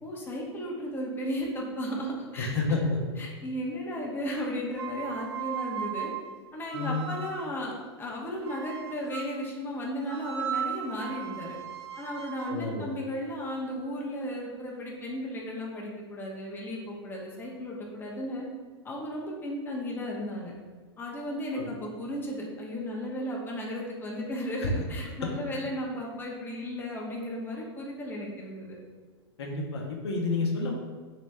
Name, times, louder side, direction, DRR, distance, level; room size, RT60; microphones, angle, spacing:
voice 1, 0.0-2.8 3.2-6.1 6.5-11.6 12.0-18.5 18.8-20.5 21.0-28.8, equal, 15° left, -2 dB, 0.7 m, -35 dB
voice 2, 2.4-3.0 6.7-7.1 12.5-12.9 21.5-21.7 23.2-23.3 24.6-24.7 25.2-25.3 29.4-30.7, left 3 dB, 70° left, 0 dB, 0.7 m, -30 dB
sound 1, 4.7-7.6 8.4-9.5 10.1-14.1, right 8 dB, 90° right, 0.4 m, -38 dB
3.0 x 2.9 x 3.3 m, 1.5 s
hypercardioid pair, 105°, 14 cm